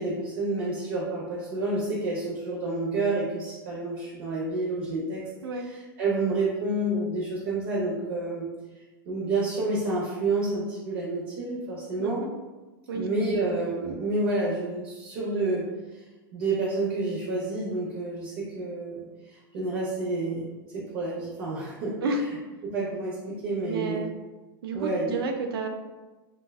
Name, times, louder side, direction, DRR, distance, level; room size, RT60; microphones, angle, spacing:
voice 1, 0.0-5.2 5.5-8.5 9.1-12.2 12.9-15.6 16.3-22.0 22.6-24.0 24.7-25.1, right 2 dB, 40° right, -5 dB, 0.6 m, -29 dB
voice 2, 23.7-24.1 24.6-25.7, right 3 dB, 85° right, 4 dB, 0.5 m, -30 dB
2.6 x 2.2 x 3.3 m, 1.2 s
supercardioid pair, 180°, 12 cm